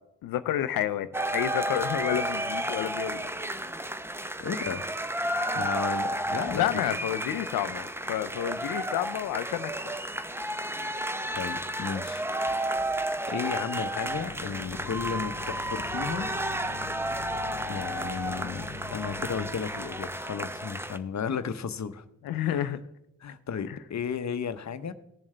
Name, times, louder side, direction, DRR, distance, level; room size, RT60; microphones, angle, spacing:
voice 1, 0.2-3.2 6.5-9.7 22.2-22.8 23.7-23.8, left 11 dB, 85° left, 14 dB, 0.6 m, -30 dB
sound 1, 1.1-21.0, right 1 dB, 5° right, 0.8 m, -32 dB
voice 2, 4.4-4.9 5.5-7.0 11.3-12.2 13.3-16.3 17.7-22.0 22.4-22.8 23.2-24.9, left 6 dB, 55° left, 12 dB, 0.9 m, -34 dB
sound 2, 13.6-20.2, left 8 dB, 35° left, 0.5 m, -44 dB
18.0 x 7.2 x 3.3 m, 0.83 s
supercardioid pair, 40°, 34 cm